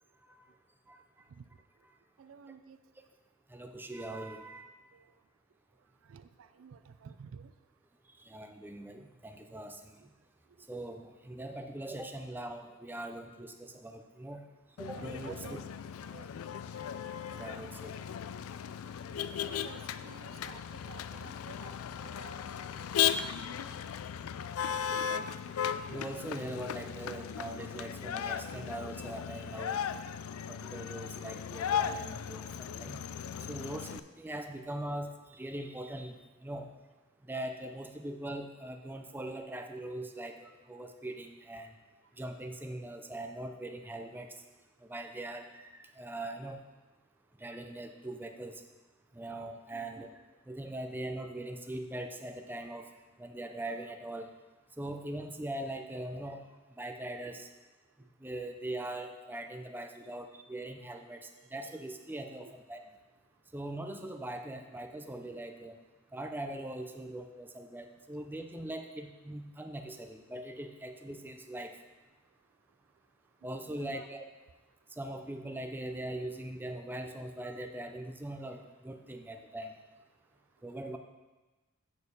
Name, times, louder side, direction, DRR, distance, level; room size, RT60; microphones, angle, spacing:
voice 1, 2.2-2.8 4.9-5.1 6.0-7.5 14.8-15.6 16.1-16.3 19.5-21.7 22.0-23.5 49.7-49.9 62.4-62.5 66.9-67.1 73.4-74.1, right 6 dB, 70° right, 11 dB, 0.4 m, -52 dB
voice 2, 3.5-4.7 8.3-10.0 10.7-14.4 14.8-15.6 17.3-18.2 24.7-25.3 25.9-29.8 30.5-33.0 33.3-36.2 36.4-36.7 37.3-41.7 42.2-44.3 44.8-46.6 47.4-48.6 49.1-50.1 50.5-52.9 53.2-54.3 54.8-56.4 56.8-57.5 58.2-62.8 63.5-65.8 66.1-71.7 73.4-74.3 75.0-79.8 80.6-81.0, right 1 dB, 10° right, 5 dB, 0.5 m, -41 dB
Motor vehicle (road), 14.8-34.0, left 9 dB, 90° left, 0.3 m, -36 dB
6.8 x 6.6 x 5.2 m, 1.2 s
head